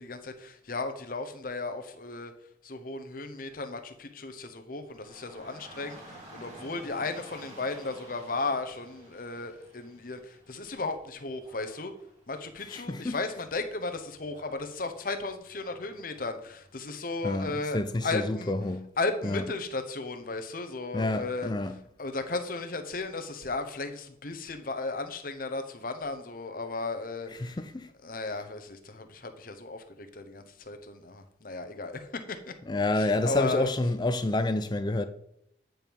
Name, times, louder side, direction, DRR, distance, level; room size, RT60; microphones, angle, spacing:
voice 1, 0.0-2.3 2.6-11.9 12.3-18.6 19.0-21.5 22.0-27.6 28.0-32.5 32.9-33.7, left 3 dB, 50° left, 0.8 m, -35 dB
Dog / Rain, 4.8-17.0, right 1 dB, 35° right, 2.2 m, -53 dB
voice 2, 12.7-13.2 17.2-18.9 19.2-19.4 20.9-21.8 27.4-27.9 32.7-35.1, left 2 dB, 25° left, 0.4 m, -28 dB
9.0 x 4.6 x 5.2 m
head